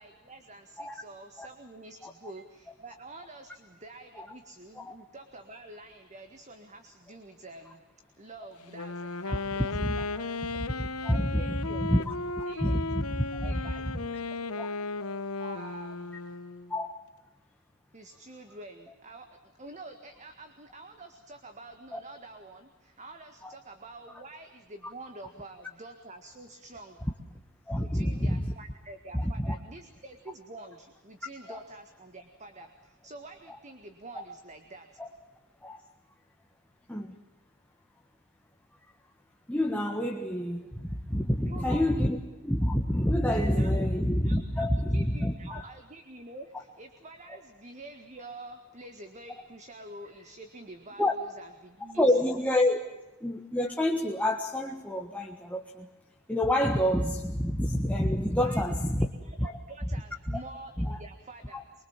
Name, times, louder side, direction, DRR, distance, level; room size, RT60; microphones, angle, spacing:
voice 1, 0.0-7.8 8.2-10.3 11.3-11.8 12.5-12.7 13.4-14.3 15.4-16.4 17.9-27.0 27.8-35.0 41.4-41.9 43.3-44.7 44.9-52.2 58.4-58.9 59.2-61.8, right 2 dB, 35° right, 6 dB, 1.8 m, -47 dB
Wind instrument woodwind instrument, 8.6-16.7, left 3 dB, 85° left, 1.2 m, -35 dB
voice 2, 10.8-12.1 12.6-13.7 14.6-14.7 16.7-17.0 21.9-22.0 23.4-23.5 27.7-28.5 29.1-29.5 31.5-31.6 33.5-33.6 34.1-34.2 35.0-35.1 35.6-35.8 36.9-37.2 39.5-42.2 42.4-45.6 51.0-51.1 52.0-52.9 53.2-55.9 56.3-59.1 59.4-59.5 60.3-60.4 60.8-61.0 61.5-61.8, left 1 dB, 5° left, 1 dB, 1.5 m, -28 dB
24.5 x 23.5 x 7.4 m, 1.1 s
head